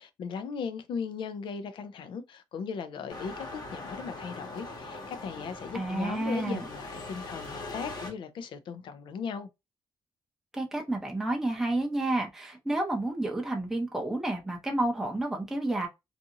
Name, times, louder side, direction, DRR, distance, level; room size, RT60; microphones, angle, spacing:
voice 1, 0.0-9.5, left 6 dB, 70° left, 0.5 m, -37 dB
sound 1, 3.1-8.1, left 2 dB, 50° left, 1.1 m, -41 dB
voice 2, 5.7-6.6 10.5-15.9, right 2 dB, 5° right, 0.6 m, -30 dB
2.6 x 2.5 x 2.7 m
wide cardioid pair, 175°, 9 cm